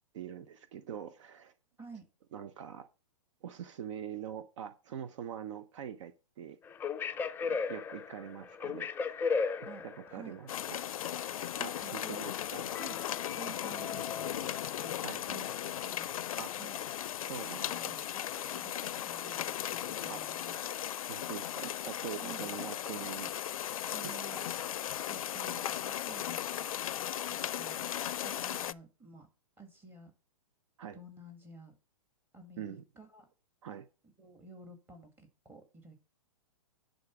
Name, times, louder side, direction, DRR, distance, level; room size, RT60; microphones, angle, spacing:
voice 1, 0.1-1.5 2.3-2.9 3.4-6.6 7.4-9.3 9.8-11.1 11.6-12.6 15.0-15.2 16.4-16.5 17.3-17.9 20.1-20.2 21.1-23.7 24.0-24.5 30.8-31.0 32.6-32.8 33.6-33.9, right 9 dB, 60° right, 0.8 m, -44 dB
sound 1, 6.7-10.4 12.7-14.9, left 5 dB, 10° left, 0.4 m, -36 dB
voice 2, 9.6-10.4 11.8-12.3 12.7-13.0 13.3-15.0 15.3-16.1 16.5-16.8 17.4-20.6 22.1-22.4 23.9-24.4 25.1-26.7 27.3-29.3 29.6-30.1 30.9-31.7 32.3-33.3 34.2-36.0, right 3 dB, 10° right, 2.0 m, -52 dB
sound 2, 10.5-28.7, left 11 dB, 75° left, 0.4 m, -37 dB
10.5 x 4.0 x 6.1 m
hypercardioid pair, 135°, 18 cm